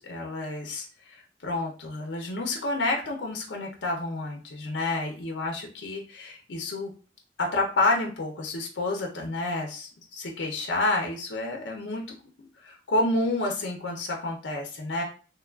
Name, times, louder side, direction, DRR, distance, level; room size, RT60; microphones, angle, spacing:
voice 1, 0.0-6.9 7.4-15.0, left 2 dB, 70° left, 1 dB, 0.5 m, -30 dB
3.0 x 2.3 x 2.2 m, 0.36 s
head